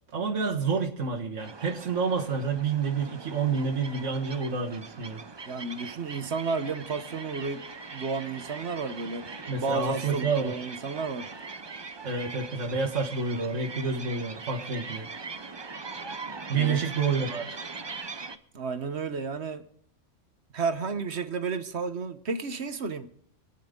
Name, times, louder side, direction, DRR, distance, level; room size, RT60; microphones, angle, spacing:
voice 1, 0.1-5.2 9.5-10.7 12.0-15.1 16.5-17.6, right 5 dB, 80° right, 1.9 m, -29 dB
sound 1, 1.4-18.4, right 4 dB, 30° right, 0.6 m, -41 dB
voice 2, 5.5-7.6 7.9-11.3 16.5-16.8 18.5-19.6 20.5-23.1, right 4 dB, 60° right, 1.3 m, -32 dB
27.5 x 9.8 x 3.8 m
omnidirectional pair, 1.3 m